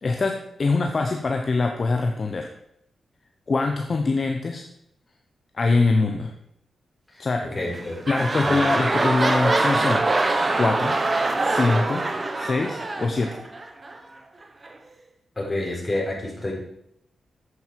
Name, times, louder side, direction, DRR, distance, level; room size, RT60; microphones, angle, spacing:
voice 1, 0.0-2.5 3.5-4.7 5.5-6.3 7.2-7.5 8.1-10.1 10.6-11.0 11.4-12.1 12.4-13.4, left 3 dB, 45° left, 4 dB, 0.9 m, -23 dB
voice 2, 7.1-8.0 8.4-8.5 15.4-16.5, left 1 dB, 25° left, -2 dB, 4.5 m, -29 dB
sound 1, 7.6-14.0 14.6-14.7, right 2 dB, 35° right, 1.2 m, -24 dB
9.5 x 8.1 x 4.7 m, 0.77 s
cardioid pair, 65°, 0 cm